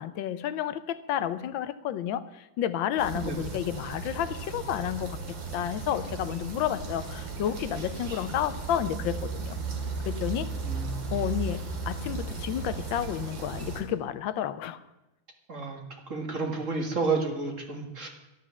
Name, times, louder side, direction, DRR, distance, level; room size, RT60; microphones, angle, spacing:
voice 1, 0.0-5.2 5.5-9.6 10.1-10.5 11.1-14.8, left 10 dB, 75° left, 1.3 m, -31 dB
sound 1, 3.0-13.8, right 4 dB, 65° right, 2.5 m, -36 dB
voice 2, 3.1-3.5 10.6-11.0 15.5-15.8 16.1-18.1, right 4 dB, 40° right, 2.1 m, -31 dB
12.0 x 10.5 x 7.1 m
omnidirectional pair, 2.3 m